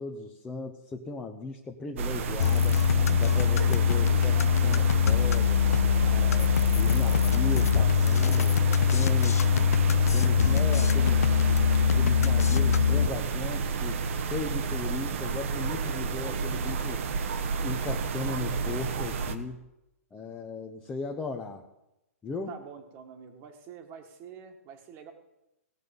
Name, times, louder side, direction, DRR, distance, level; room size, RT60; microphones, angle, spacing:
voice 1, 0.0-2.8 3.2-5.6 6.0-8.6 8.9-9.6 10.1-11.3 11.9-17.1 17.6-19.7 20.1-21.6 22.2-22.5, left 4 dB, 10° left, 1 dB, 0.9 m, -37 dB
sound 1, 2.0-19.4, right 5 dB, 60° right, 1.2 m, -31 dB
sound 2, 2.4-13.1, left 8 dB, 85° left, 0.5 m, -23 dB
voice 2, 22.5-25.1, right 7 dB, 30° right, 6 dB, 1.7 m, -46 dB
18.0 x 6.2 x 5.4 m, 0.92 s
hypercardioid pair, 145°, 8 cm